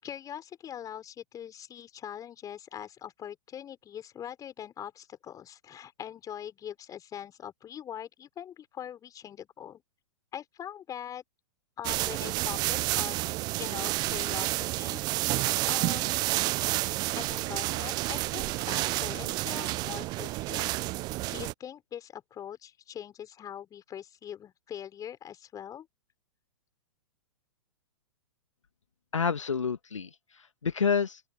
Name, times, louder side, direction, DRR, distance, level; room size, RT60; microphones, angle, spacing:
voice 1, 0.0-9.8 10.3-11.2 11.8-15.0 15.3-16.3 17.1-20.7 21.3-25.9, left 9 dB, 20° left, 5.0 m, -42 dB
sound 1, 11.8-21.5, right 20 dB, 25° right, 0.4 m, -30 dB
voice 2, 29.1-31.2, left 6 dB, 75° left, 1.7 m, -29 dB
open air
figure-of-eight pair, 110°, 16 cm